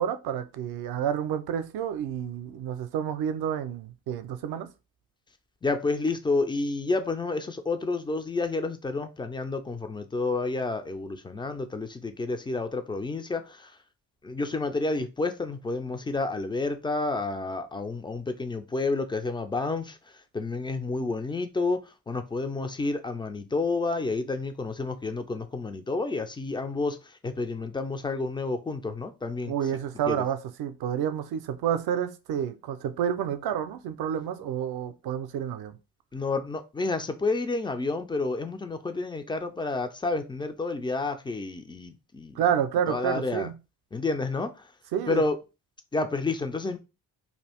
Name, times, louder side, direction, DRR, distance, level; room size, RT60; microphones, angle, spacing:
voice 1, 0.0-4.7 29.4-35.8 42.4-43.5 44.9-45.2, right 9 dB, 55° right, 0.6 m, -29 dB
voice 2, 5.6-13.7 14.2-29.5 30.1-30.2 36.1-42.4 42.9-43.5 43.9-44.7 45.1-45.4 45.9-46.8, left 3 dB, 10° left, 0.4 m, -30 dB
2.7 x 2.4 x 3.4 m
hypercardioid pair, 50°, 46 cm